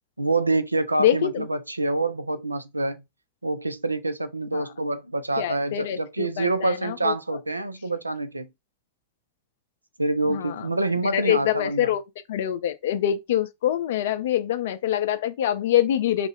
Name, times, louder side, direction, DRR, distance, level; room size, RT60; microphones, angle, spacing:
voice 1, 0.2-3.0 3.4-8.5 10.0-11.9, right 2 dB, 85° right, 0.4 m, -26 dB
voice 2, 1.0-1.5 4.5-4.7 5.4-7.1 10.2-10.8 11.0-12.0 12.3-16.3, left 11 dB, 55° left, 0.4 m, -25 dB
2.4 x 2.0 x 3.9 m
figure-of-eight pair, 90°, 0 cm